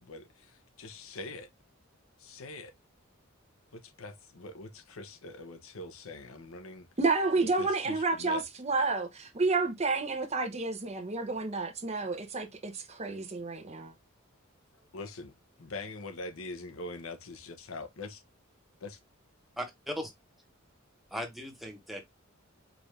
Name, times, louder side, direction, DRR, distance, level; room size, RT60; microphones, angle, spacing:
voice 1, 0.8-1.5 2.2-2.7 3.7-6.9 7.6-8.4 14.9-15.3 15.6-18.2 18.8-19.0, left 2 dB, 85° left, 0.8 m, -43 dB
voice 2, 7.0-13.9, right 3 dB, 30° right, 0.8 m, -30 dB
voice 3, 19.6-20.1 21.1-22.0, equal, ahead, 0.9 m, -37 dB
4.9 x 2.5 x 3.2 m
head